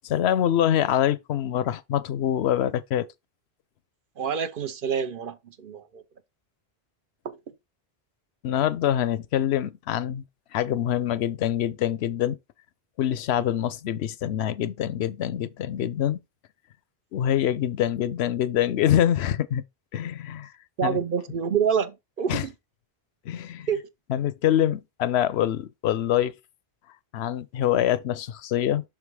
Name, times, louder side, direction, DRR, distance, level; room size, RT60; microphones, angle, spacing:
voice 1, 0.0-3.1 8.4-10.2 10.5-12.4 13.0-16.2 17.1-19.6 19.9-20.5 20.8-21.0 22.3-22.4 23.3-23.7 24.1-26.3 27.1-28.8, left 11 dB, 90° left, 0.9 m, -25 dB
voice 2, 4.2-6.0 7.2-7.4 20.8-22.5 23.7-23.9, right 7 dB, 60° right, 0.9 m, -27 dB
6.2 x 3.5 x 4.7 m
omnidirectional pair, 1.0 m